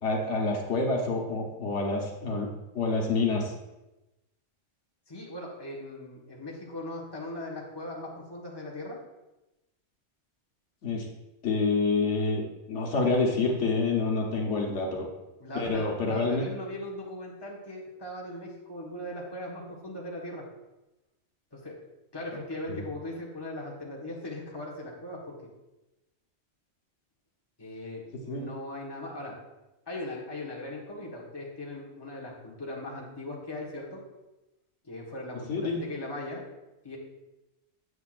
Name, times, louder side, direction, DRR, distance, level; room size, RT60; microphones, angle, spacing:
voice 1, 0.0-2.5 2.7-3.5 10.8-11.1 11.4-12.4 12.7-15.1 15.5-16.4 22.7-22.8 28.3-28.4 35.5-35.8, left 3 dB, 85° left, -1 dB, 1.5 m, -27 dB
voice 2, 5.1-9.0 15.4-20.4 21.5-21.7 22.1-25.4 27.6-29.3 29.9-34.0 34.8-36.4 36.8-37.0, left 1 dB, 20° left, -3 dB, 1.5 m, -39 dB
8.0 x 7.9 x 2.5 m, 0.98 s
omnidirectional pair, 1.2 m